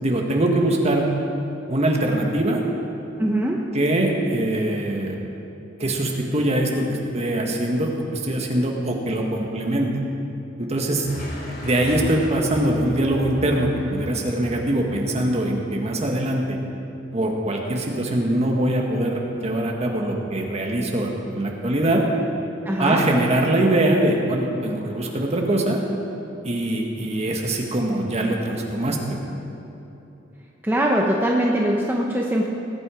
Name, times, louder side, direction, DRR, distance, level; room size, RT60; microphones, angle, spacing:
voice 1, 0.0-1.1 1.7-2.6 3.7-5.2 5.8-9.9 10.6-11.1 11.6-16.6 17.1-22.0 22.8-25.8 26.4-29.3, right 1 dB, 35° right, 1 dB, 1.5 m, -22 dB
voice 2, 3.2-3.7 22.7-23.0 30.6-32.5, right 1 dB, 10° right, -1 dB, 0.8 m, -22 dB
sound 1, 11.0-15.7, equal, 50° left, 3.6 m, -36 dB
19.0 x 8.7 x 5.0 m, 2.9 s
head